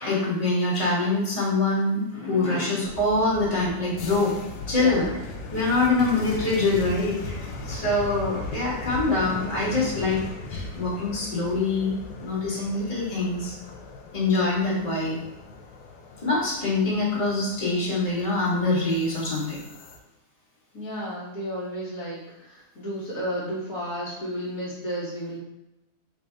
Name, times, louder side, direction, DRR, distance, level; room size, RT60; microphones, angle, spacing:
voice 1, 0.0-4.4 4.7-5.1 5.5-10.2 10.5-11.9 12.2-13.5 14.1-15.2 16.2-19.6, left 2 dB, 25° left, -7 dB, 1.7 m, -24 dB
sound 1, 2.8-20.0, left 3 dB, 75° left, 1.2 m, -38 dB
voice 2, 4.7-5.2 20.7-25.4, equal, 60° left, -8 dB, 1.5 m, -33 dB
4.1 x 2.7 x 4.4 m, 0.94 s
omnidirectional pair, 1.7 m